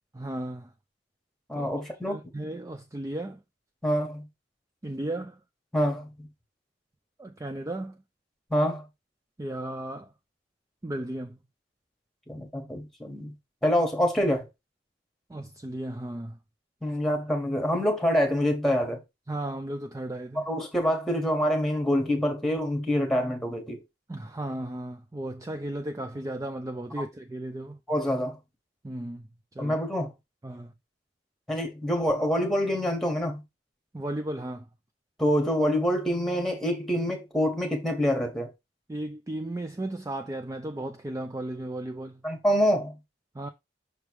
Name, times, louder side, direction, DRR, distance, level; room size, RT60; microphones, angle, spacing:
voice 1, 0.1-0.7 1.5-3.4 4.8-5.4 7.2-8.0 9.4-10.1 10.8-11.4 15.3-16.4 19.3-20.5 24.1-27.8 28.8-29.3 29.5-29.8 30.4-30.7 33.9-34.7 38.9-42.2 43.3-43.5, right 1 dB, 20° right, 0.4 m, -35 dB
voice 2, 1.5-2.2 3.8-4.3 5.7-6.3 8.5-8.8 12.3-13.3 13.6-14.5 16.8-19.0 20.3-23.8 27.9-28.4 29.6-30.1 31.5-33.4 35.2-38.5 42.2-43.0, equal, ahead, 1.5 m, -26 dB
6.1 x 3.3 x 4.7 m
head